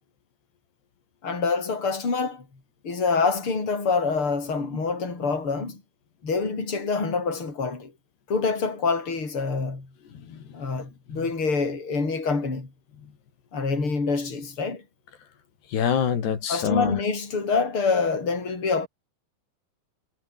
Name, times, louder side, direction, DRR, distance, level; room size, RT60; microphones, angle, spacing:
voice 1, 1.2-2.5 2.8-5.8 6.2-7.9 8.3-9.9 10.5-12.7 13.5-14.8 16.5-18.9, left 4 dB, 30° left, 6.9 m, -26 dB
voice 2, 10.1-10.7 11.1-11.3 13.0-13.1 15.7-17.0, left 8 dB, 85° left, 5.6 m, -27 dB
omnidirectional pair, 4.6 m